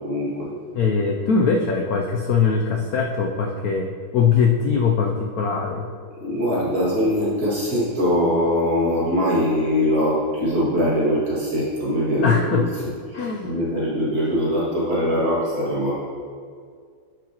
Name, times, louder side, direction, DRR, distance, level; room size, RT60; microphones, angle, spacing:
voice 1, 0.0-0.5 6.2-12.6 13.1-15.9, equal, 45° right, -8 dB, 2.5 m, -22 dB
voice 2, 0.8-3.9 4.1-5.9 12.2-12.7 13.1-13.5, left 5 dB, 75° left, 1 dB, 0.8 m, -21 dB
10.0 x 6.1 x 2.9 m, 2.1 s
omnidirectional pair, 2.2 m